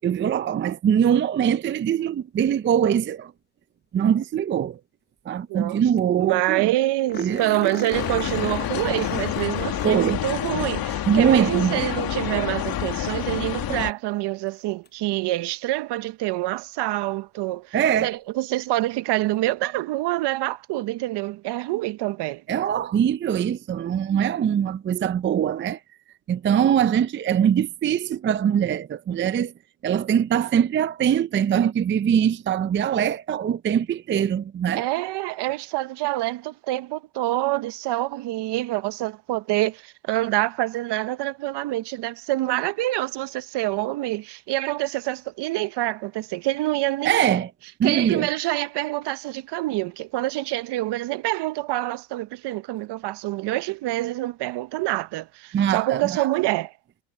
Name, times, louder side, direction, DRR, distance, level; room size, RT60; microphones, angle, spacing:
voice 1, 0.0-3.3 3.9-4.8 5.3-6.7 7.2-7.7 9.8-10.2 11.1-11.8 17.7-18.2 22.5-25.8 26.3-29.5 29.8-34.9 47.0-47.5 47.8-48.3 55.5-56.3, right 9 dB, 25° right, 0.5 m, -22 dB
voice 2, 5.5-5.8 6.2-17.8 18.0-22.4 34.7-47.2 47.8-56.7, right 17 dB, 60° right, 1.0 m, -26 dB
sound 1, 5.7-5.8 6.0-6.1 6.4-6.5 7.1-12.5 14.9-15.0 17.8-17.9, left 7 dB, 20° left, 0.8 m, -39 dB
sound 2, 7.9-13.9, left 12 dB, 50° left, 2.3 m, -28 dB
supercardioid pair, 100°, 47 cm